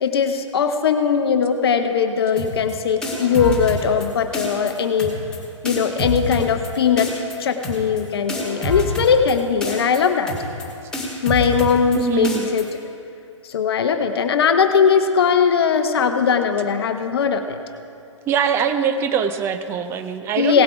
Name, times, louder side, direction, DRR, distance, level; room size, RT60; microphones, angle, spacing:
voice 1, 0.0-5.2 5.6-7.1 7.4-10.3 11.2-12.7 13.5-17.6 20.3-20.6, left 6 dB, 50° left, 7 dB, 0.8 m, -19 dB
sound 1, 2.4-2.7 3.0-4.1 4.3-4.7 5.0-5.4 5.6-6.7 7.0-7.4 7.6-8.0 8.3-9.3 9.6-10.0 10.3-10.6 10.9-12.0 12.2-12.6, left 1 dB, 5° left, 1.9 m, -27 dB
voice 2, 11.9-12.5 18.3-20.6, right 7 dB, 15° right, 8 dB, 0.5 m, -22 dB
17.0 x 8.4 x 4.7 m, 2.6 s
figure-of-eight pair, 125°, 16 cm